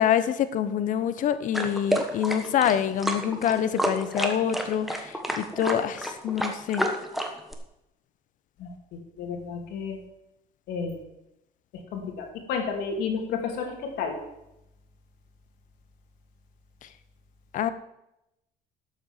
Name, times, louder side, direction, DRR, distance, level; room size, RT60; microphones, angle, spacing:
voice 1, 0.0-6.9 16.8-16.9 17.5-17.7, left 9 dB, 50° left, 13 dB, 0.9 m, -26 dB
sound 1, 1.5-7.5, equal, ahead, 1.2 m, -29 dB
voice 2, 9.2-10.0 10.7-11.0 11.9-14.2, left 5 dB, 75° left, 3 dB, 3.0 m, -31 dB
12.0 x 7.0 x 7.2 m, 0.86 s
cardioid pair, 150°, 17 cm